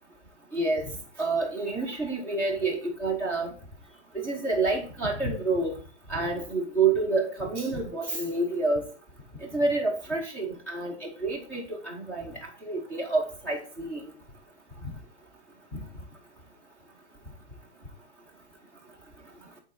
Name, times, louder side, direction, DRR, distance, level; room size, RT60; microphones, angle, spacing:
voice 1, 0.5-0.9 1.2-3.5 4.1-5.8 6.1-8.8 9.4-14.0, right 3 dB, 5° left, -1 dB, 0.8 m, -28 dB
8.5 x 3.9 x 4.1 m, 0.39 s
hypercardioid pair, 160°, 35 cm